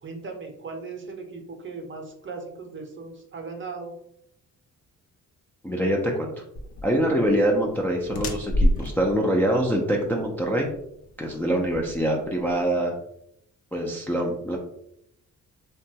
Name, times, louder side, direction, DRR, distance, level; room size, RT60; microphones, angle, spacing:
voice 1, 0.0-3.9, right 4 dB, 35° right, 3 dB, 0.7 m, -38 dB
voice 2, 5.6-6.3 6.8-10.7 11.2-12.9 13.7-14.6, right 1 dB, 5° left, -1 dB, 0.4 m, -24 dB
sound 1, 6.5-12.6, equal, 60° left, 0.6 m, -29 dB
2.9 x 2.3 x 2.7 m, 0.74 s
cardioid pair, 100°, 33 cm